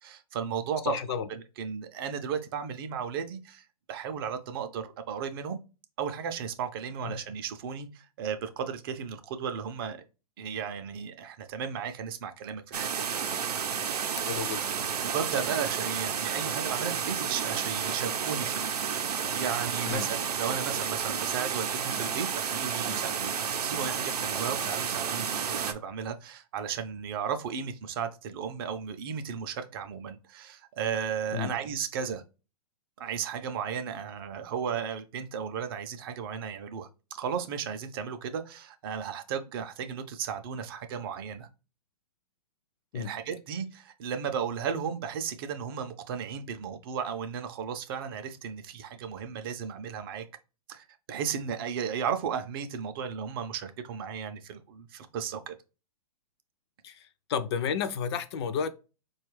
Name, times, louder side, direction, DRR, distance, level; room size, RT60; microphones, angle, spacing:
voice 1, 0.0-1.0 1.3-5.6 6.0-10.0 10.4-13.1 14.1-14.4 15.0-23.3 23.6-32.2 33.0-41.5 42.9-50.3 50.7-55.5, right 7 dB, 35° right, 0.4 m, -35 dB
voice 2, 0.8-1.3 7.0-7.2 14.2-14.7 19.9-20.1 31.3-31.6 42.9-43.1 56.8-58.7, left 7 dB, 45° left, 0.4 m, -32 dB
sound 1, 12.7-25.7, right 7 dB, 85° right, 0.6 m, -31 dB
4.2 x 2.3 x 3.0 m
hypercardioid pair, 140°, 20 cm